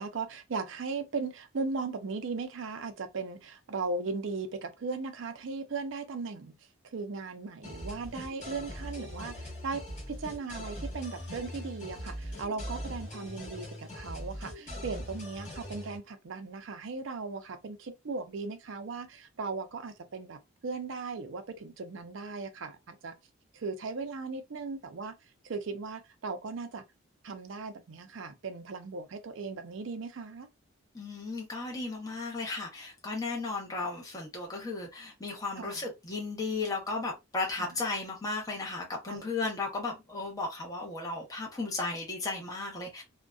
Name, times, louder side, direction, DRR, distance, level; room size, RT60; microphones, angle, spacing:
voice 1, 0.0-6.5 6.9-9.8 10.1-23.1 23.5-25.1 25.4-26.8 27.2-30.5 35.6-35.8 37.6-37.8 39.1-39.3, right 4 dB, 60° right, 0.5 m, -37 dB
sound 1, 7.6-16.0, equal, 35° left, 1.1 m, -41 dB
voice 2, 30.9-43.0, left 3 dB, 15° left, 0.6 m, -35 dB
2.6 x 2.1 x 2.2 m
head